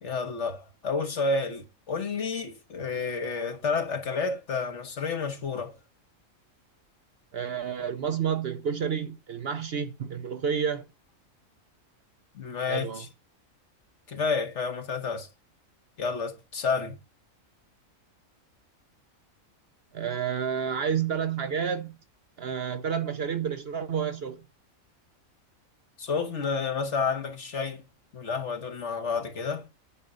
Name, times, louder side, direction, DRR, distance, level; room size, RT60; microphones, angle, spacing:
voice 1, 0.0-5.7 12.3-13.1 14.1-15.3 16.0-17.0 26.0-27.8 28.1-29.6, left 4 dB, 55° left, 1.6 m, -30 dB
voice 2, 7.3-10.9 12.7-13.0 19.9-22.0 22.4-24.4, right 7 dB, 55° right, 0.8 m, -30 dB
10.0 x 5.3 x 5.0 m
omnidirectional pair, 1.4 m